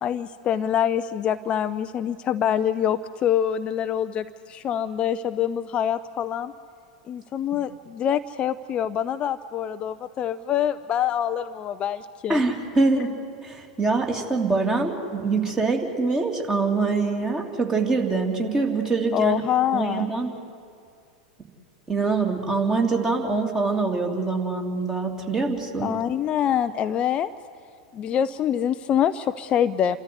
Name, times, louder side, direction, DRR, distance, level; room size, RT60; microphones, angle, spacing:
voice 1, 0.0-6.5 7.1-12.4 19.1-20.1 25.8-27.3 27.9-30.0, left 9 dB, 30° left, 11 dB, 0.5 m, -25 dB
voice 2, 12.3-13.1 13.4-19.4 19.7-20.3 21.9-25.9, right 3 dB, 15° right, 2 dB, 2.8 m, -24 dB
29.0 x 13.5 x 9.6 m, 2.3 s
figure-of-eight pair, 90°, 4 cm